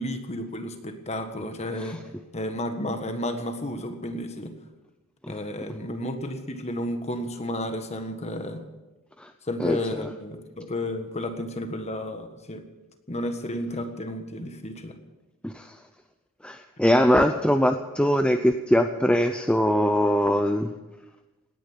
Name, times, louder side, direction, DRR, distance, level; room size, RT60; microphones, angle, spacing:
voice 1, 0.0-2.0 2.3-4.5 5.3-8.6 9.5-12.6 13.1-15.0, left 1 dB, 30° left, 7 dB, 1.6 m, -32 dB
voice 2, 15.4-15.7 16.4-20.7, equal, 5° left, 7 dB, 0.6 m, -22 dB
18.0 x 10.5 x 7.3 m, 1.1 s
head